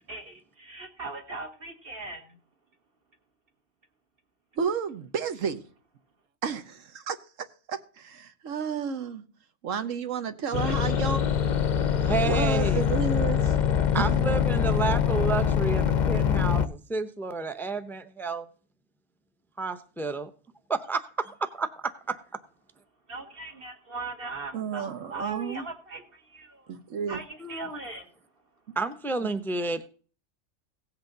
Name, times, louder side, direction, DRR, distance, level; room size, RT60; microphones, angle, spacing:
voice 1, 0.1-2.3 23.1-26.7 27.1-28.1, right 3 dB, 45° right, 1.7 m, -39 dB
voice 2, 4.6-5.6 6.4-7.2 7.7-9.2 9.6-11.2 12.2-13.6 14.0-14.1 24.5-25.7 26.7-27.2, right 6 dB, 75° right, 1.3 m, -31 dB
sound 1, 10.5-16.7, left 8 dB, 45° left, 0.6 m, -24 dB
voice 3, 12.0-12.8 13.9-18.5 19.6-20.3 20.7-22.2 27.4-27.8 28.8-29.8, right 4 dB, 5° left, 0.4 m, -30 dB
17.0 x 8.1 x 3.9 m
omnidirectional pair, 1.4 m